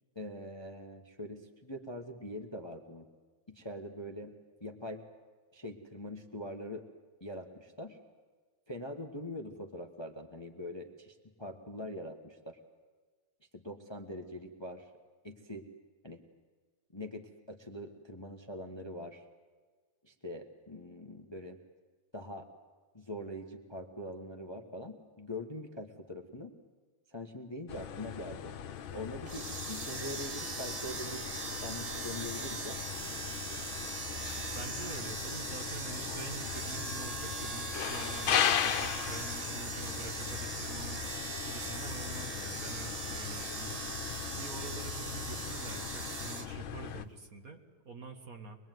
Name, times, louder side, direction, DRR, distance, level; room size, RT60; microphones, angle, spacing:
voice 1, 0.1-3.1 3.5-4.3 4.6-5.0 5.5-6.9 7.2-8.0 8.7-12.6 13.5-14.9 15.2-15.6 16.0-16.2 16.9-19.3 20.0-21.6 22.1-22.5 22.9-26.5 27.1-28.5 28.9-31.2 31.6-32.8, left 1 dB, 15° left, 4 dB, 1.2 m, -43 dB
sound 1, 27.7-47.1, left 9 dB, 75° left, 1.7 m, -38 dB
sound 2, 29.2-46.5, right 3 dB, 30° right, 0.7 m, -40 dB
voice 2, 34.5-41.0 41.4-43.8 44.4-48.6, right 4 dB, 45° right, 4 dB, 2.1 m, -46 dB
25.0 x 21.0 x 9.3 m, 1.4 s
omnidirectional pair, 2.2 m